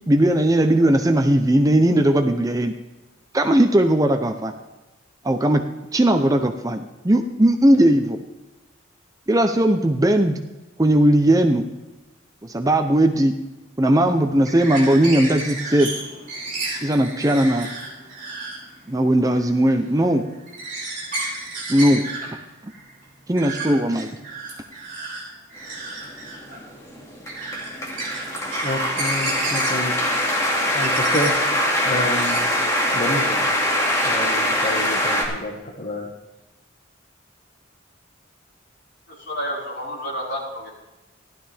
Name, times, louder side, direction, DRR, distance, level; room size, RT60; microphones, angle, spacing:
voice 1, 0.1-2.7 3.3-4.5 5.2-5.6 5.9-8.2 9.3-10.4 10.8-11.7 12.4-13.3 13.8-15.9 16.8-17.7 18.9-20.2 21.7-22.0 23.3-24.1, right 1 dB, 20° right, 6 dB, 0.6 m, -18 dB
sound 1, 14.0-32.4, right 2 dB, 45° right, 3.8 m, -33 dB
sound 2, 26.0-35.2, left 1 dB, 15° left, 2.2 m, -23 dB
voice 2, 28.4-29.9 30.7-31.3 31.8-32.5 32.9-33.4 34.0-36.1, left 1 dB, 40° left, -2 dB, 1.5 m, -29 dB
voice 3, 39.2-40.7, equal, 60° left, -6 dB, 5.1 m, -30 dB
15.5 x 12.0 x 3.5 m, 1.1 s
head